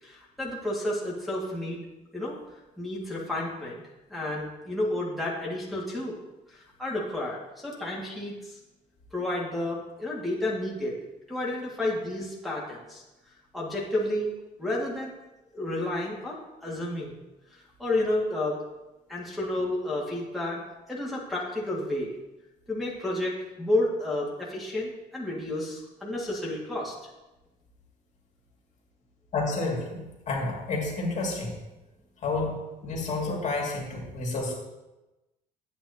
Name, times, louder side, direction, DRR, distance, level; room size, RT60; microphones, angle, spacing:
voice 1, 0.0-1.8 2.1-2.4 2.8-3.8 4.1-6.2 6.5-8.6 9.1-11.0 11.3-13.0 13.5-14.3 14.6-15.2 15.5-17.1 17.5-18.6 19.1-20.6 20.9-22.2 22.7-27.1, left 1 dB, ahead, -6 dB, 1.9 m, -31 dB
voice 2, 29.3-31.5 32.2-34.6, left 3 dB, 45° left, -2 dB, 2.2 m, -30 dB
9.3 x 8.1 x 2.8 m, 1.0 s
cardioid pair, 110°, 17 cm